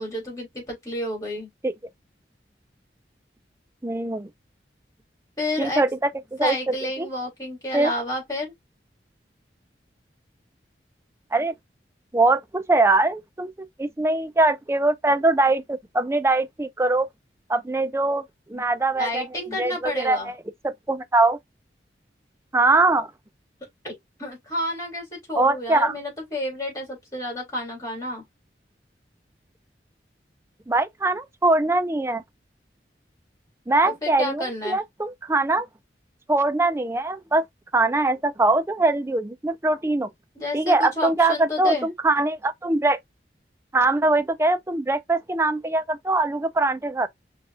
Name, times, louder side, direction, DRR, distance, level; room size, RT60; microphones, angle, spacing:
voice 1, 0.0-1.5 5.4-5.8 6.4-8.5 19.0-20.3 23.8-23.9 24.2-28.2 34.0-34.8 40.3-41.9, left 1 dB, 20° left, 3.3 m, -30 dB
voice 2, 3.8-4.3 5.6-6.1 6.4-7.1 7.7-7.9 11.3-11.6 12.1-13.5 13.8-17.1 17.5-18.2 18.5-19.2 19.6-20.3 20.6-21.4 22.5-23.1 25.3-25.9 30.7-32.2 33.7-35.7 36.3-37.4 37.7-40.1 40.5-43.0 43.7-47.1, right 2 dB, 15° right, 0.5 m, -22 dB
5.3 x 3.4 x 2.5 m
head